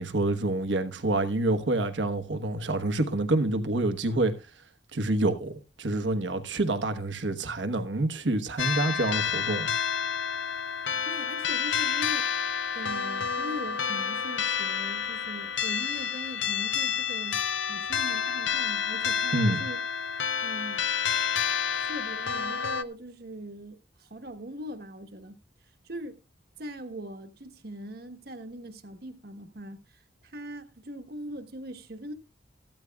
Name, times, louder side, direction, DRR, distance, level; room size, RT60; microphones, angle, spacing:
voice 1, 0.0-4.3 4.9-9.7 19.3-19.6, right 2 dB, 80° right, 1.2 m, -27 dB
sound 1, 8.6-22.8, left 7 dB, 85° left, 0.7 m, -29 dB
voice 2, 11.0-12.4 12.7-17.4 17.7-19.8 20.4-20.9 21.7-25.4 25.8-26.2 26.6-32.1, equal, 55° right, 1.2 m, -41 dB
15.5 x 12.5 x 2.3 m
head